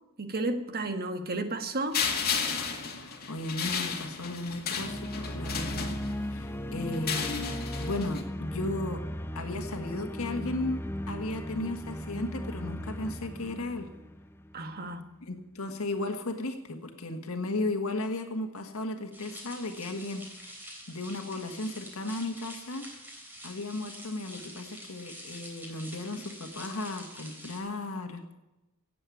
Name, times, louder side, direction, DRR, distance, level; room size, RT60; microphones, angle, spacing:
voice 1, 0.2-2.0 14.5-15.0, right 2 dB, 45° right, 7 dB, 1.5 m, -32 dB
sound 1, 1.9-6.4 6.9-8.2, left 6 dB, 45° left, 2.1 m, -33 dB
voice 2, 2.9-5.9 6.3-9.0 9.3-13.9 15.2-20.6 20.9-22.9 23.4-28.3, left 2 dB, 70° left, 5 dB, 1.6 m, -35 dB
sound 2, 4.7-14.8, equal, 10° left, 0.6 m, -37 dB
sound 3, 19.1-27.6, equal, 10° right, 3.6 m, -46 dB
17.0 x 7.8 x 8.5 m, 0.97 s
head